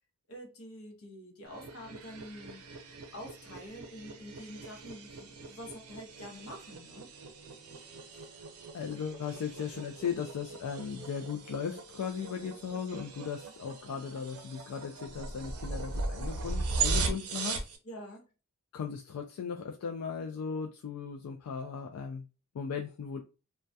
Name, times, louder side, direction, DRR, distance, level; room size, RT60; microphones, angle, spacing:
voice 1, 0.3-2.6 3.1-7.1 17.8-18.2, equal, 70° left, 0.8 m, -46 dB
sound 1, 1.5-17.8, right 3 dB, 80° right, 0.5 m, -39 dB
voice 2, 8.7-17.6 18.7-22.3 22.5-23.2, left 6 dB, 90° left, 0.3 m, -37 dB
2.2 x 2.2 x 2.6 m
head